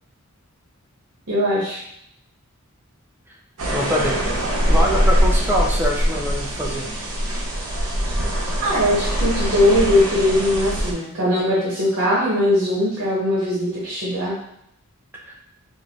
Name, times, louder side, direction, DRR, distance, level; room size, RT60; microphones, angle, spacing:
voice 1, 1.3-1.8 8.6-14.3, left 1 dB, 60° right, -7 dB, 1.1 m, -20 dB
sound 1, 3.6-10.9, equal, 80° right, 0.8 m, -22 dB
voice 2, 3.7-4.3 4.7-6.9 15.3-15.4, equal, 10° right, -2 dB, 0.4 m, -24 dB
3.6 x 2.6 x 3.0 m, 0.75 s
head